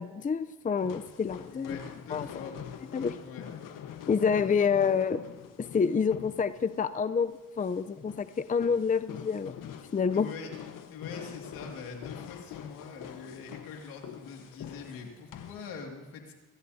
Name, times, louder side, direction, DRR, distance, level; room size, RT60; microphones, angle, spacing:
voice 1, 0.0-1.8 2.1-2.5 2.9-3.2 4.1-5.2 5.6-9.6 9.9-10.3, left 6 dB, 25° left, 12 dB, 0.6 m, -28 dB
sound 1, 0.8-15.7, left 9 dB, 70° left, 1.3 m, -45 dB
voice 2, 1.5-2.6 3.2-3.5 10.1-10.5 10.9-16.3, left 5 dB, 85° left, 2 dB, 2.4 m, -43 dB
24.0 x 15.0 x 2.8 m, 1.2 s
supercardioid pair, 65°, 34 cm